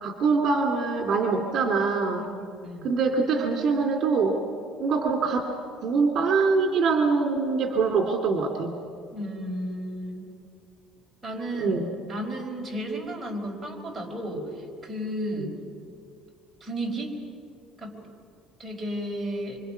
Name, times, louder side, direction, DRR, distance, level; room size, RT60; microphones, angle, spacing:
voice 1, 0.0-2.2 2.8-4.4 4.8-5.4 5.8-8.8 11.6-11.9 15.4-15.5, right 4 dB, 50° right, 2 dB, 2.8 m, -24 dB
voice 2, 2.1-2.9 9.1-10.3 11.2-11.8 12.1-15.5 16.6-17.2 17.8-18.0 18.6-19.6, equal, 5° right, -2 dB, 4.9 m, -33 dB
27.0 x 26.0 x 5.9 m, 2.4 s
cardioid pair, 135°, 0 cm